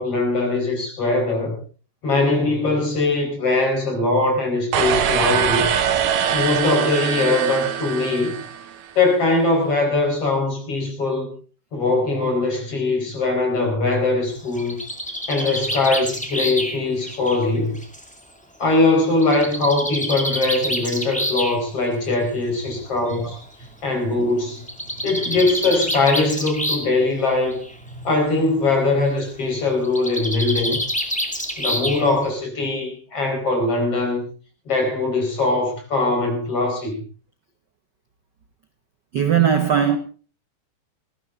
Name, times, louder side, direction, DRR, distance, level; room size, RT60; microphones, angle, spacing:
voice 1, 0.0-1.6 2.0-5.7 6.3-8.3 9.0-11.3 11.7-14.8 15.3-17.8 18.6-23.4 23.8-24.6 25.0-27.6 28.0-30.8 31.6-34.2 34.7-37.0, left 2 dB, 50° left, 5.4 m, -21 dB
sound 1, 4.7-8.9, right 8 dB, 90° right, 3.0 m, -23 dB
Bird, 14.4-18.1 19.2-21.6 22.7-22.8 23.1-23.2 23.4-23.5 24.6-27.0 27.3-27.7 29.8-32.3, equal, 5° left, 1.8 m, -27 dB
voice 2, 39.1-40.0, right 8 dB, 70° right, 1.0 m, -19 dB
19.0 x 15.0 x 3.7 m
omnidirectional pair, 3.5 m